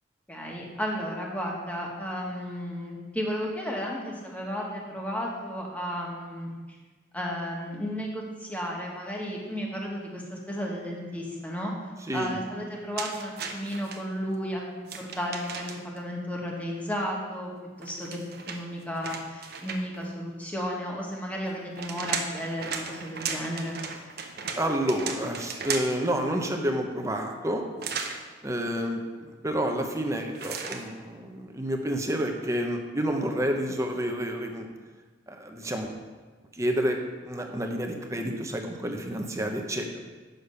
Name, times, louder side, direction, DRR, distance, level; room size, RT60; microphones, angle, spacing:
voice 1, 0.3-6.5 7.1-11.7 12.1-17.5 17.8-18.2 18.5-23.8, equal, 10° left, -2 dB, 1.5 m, -33 dB
voice 2, 12.1-12.4 24.6-27.7 28.4-34.7 35.3-35.9 36.5-39.9, equal, 15° right, 3 dB, 0.9 m, -29 dB
sound 1, 13.0-14.0 14.8-16.0 17.8-20.1 21.5-26.1 27.8-28.2 30.3-30.9, right 5 dB, 55° right, 0.9 m, -35 dB
8.5 x 6.6 x 5.6 m, 1.4 s
head